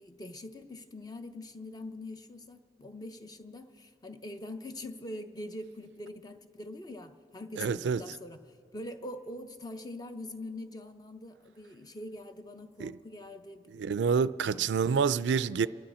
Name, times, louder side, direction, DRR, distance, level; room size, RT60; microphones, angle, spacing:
voice 1, 0.0-8.4 8.7-13.9 14.5-14.7, left 1 dB, 20° left, 0.6 m, -43 dB
voice 2, 7.6-8.0 12.8-12.9 13.7-15.7, right 6 dB, 90° right, 0.4 m, -27 dB
29.0 x 11.5 x 4.3 m
head